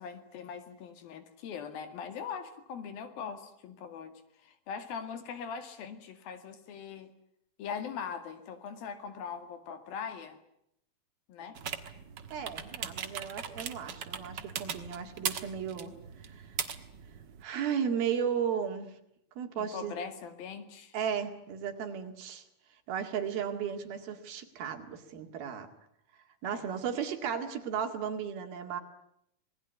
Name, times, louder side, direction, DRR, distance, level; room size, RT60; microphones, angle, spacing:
voice 1, 0.0-7.1 7.6-10.4 11.3-11.6 19.6-21.0 26.4-26.6, left 6 dB, 75° left, 9 dB, 3.9 m, -41 dB
sound 1, 11.5-17.4, right 7 dB, 55° right, 1.2 m, -39 dB
voice 2, 12.3-16.6 17.4-19.0 19.4-20.0 20.9-22.4 22.9-25.7 26.4-28.8, right 7 dB, 80° right, 5 dB, 4.1 m, -35 dB
27.0 x 20.0 x 9.6 m, 0.77 s
omnidirectional pair, 4.3 m